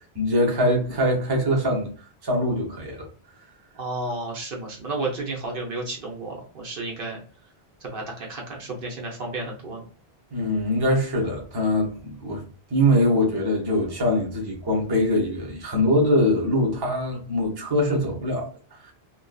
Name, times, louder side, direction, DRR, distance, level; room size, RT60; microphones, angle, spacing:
voice 1, 0.1-1.9 2.2-3.1 10.3-12.4 12.7-18.5, left 1 dB, 25° right, 0.7 m, -23 dB
voice 2, 3.7-7.2 7.8-9.8, right 2 dB, 60° right, 0.9 m, -32 dB
2.5 x 2.3 x 2.2 m
omnidirectional pair, 1.1 m